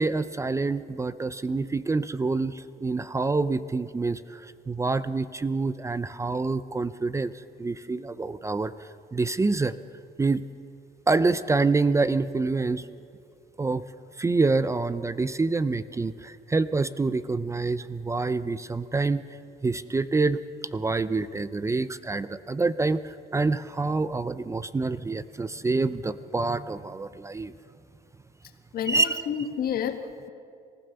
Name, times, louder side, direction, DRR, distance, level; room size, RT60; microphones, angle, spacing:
voice 1, 0.0-7.3 7.6-9.8 10.2-10.4 11.1-12.9 13.6-13.8 14.2-19.2 19.6-20.4 20.7-27.5 28.9-29.2, right 3 dB, 15° right, 14 dB, 0.5 m, -26 dB
voice 2, 28.7-30.3, left 8 dB, 65° left, 7 dB, 1.7 m, -30 dB
25.5 x 15.5 x 6.8 m, 2.4 s
cardioid pair, 110°, 17 cm